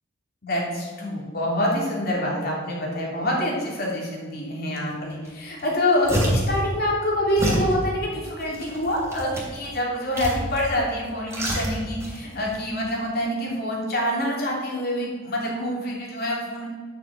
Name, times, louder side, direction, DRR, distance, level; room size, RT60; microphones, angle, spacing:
voice 1, 0.4-16.7, left 1 dB, 55° left, -2 dB, 3.2 m, -26 dB
sound 1, 5.3-5.4 5.6-6.6 7.4-7.7 8.4-9.6 10.2-10.7 11.0-12.2 12.5-12.6, equal, 15° right, 3.1 m, -27 dB
11.0 x 6.6 x 6.2 m, 1.5 s
head